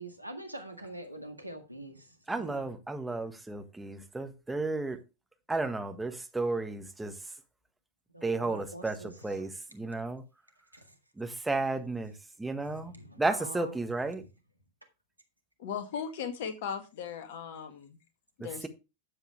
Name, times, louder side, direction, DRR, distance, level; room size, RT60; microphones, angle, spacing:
voice 1, 0.0-2.7 8.1-9.3 10.7-10.9 12.6-13.8 14.2-14.3, right 1 dB, 85° right, 1.8 m, -45 dB
voice 2, 2.3-5.0 5.5-7.1 8.2-10.2 11.2-12.1 12.4-14.2, right 3 dB, 5° right, 1.5 m, -33 dB
voice 3, 15.6-18.0 18.4-18.7, left 7 dB, 55° left, 2.0 m, -37 dB
12.0 x 7.8 x 3.3 m
figure-of-eight pair, 90°, 0 cm